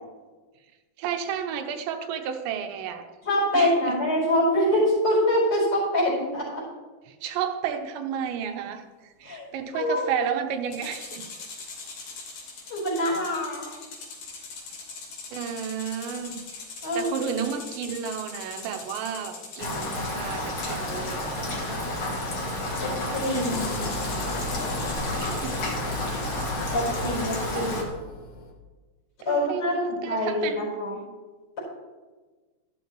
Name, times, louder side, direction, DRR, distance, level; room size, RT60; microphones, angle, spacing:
voice 1, 1.0-3.0 3.5-4.0 7.1-11.2 15.3-16.4 16.9-21.9 25.2-25.7 27.6-27.7 29.2-30.7, right 8 dB, 85° right, 5 dB, 3.2 m, -32 dB
voice 2, 3.2-6.6 9.2-9.5 9.7-10.1 12.7-13.7 16.8-17.2 22.8-23.9 26.7-27.8 29.2-30.9, left 1 dB, 25° left, -9 dB, 4.6 m, -25 dB
sound 1, 10.7-20.0 23.2-25.6, left 4 dB, 65° left, 4.4 m, -41 dB
Rain, 19.6-27.8, left 1 dB, 45° left, 1.8 m, -30 dB
sound 2, 23.5-28.5, left 3 dB, 85° left, 4.0 m, -37 dB
13.0 x 12.5 x 3.1 m, 1.3 s
omnidirectional pair, 5.0 m